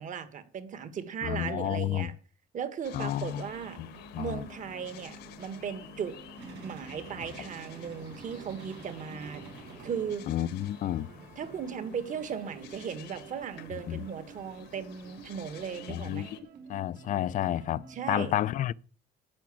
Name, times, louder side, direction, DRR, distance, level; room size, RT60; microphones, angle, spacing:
voice 1, 0.0-2.1 2.5-3.8 4.2-6.2 6.6-9.4 9.8-10.3 11.4-16.3 17.9-18.3, right 7 dB, 50° right, 1.6 m, -37 dB
voice 2, 1.2-2.1 2.9-3.4 3.8-3.9 4.1-4.4 10.3-11.1 13.9-14.0 15.9-16.3 16.7-18.7, left 12 dB, 50° left, 0.5 m, -30 dB
sound 1, 2.8-16.4, left 10 dB, 80° left, 1.4 m, -51 dB
sound 2, 3.0-18.2, right 4 dB, 70° right, 2.5 m, -51 dB
sound 3, 6.4-17.1, right 4 dB, 90° right, 5.9 m, -51 dB
10.5 x 5.9 x 8.5 m
cardioid pair, 110°, 17 cm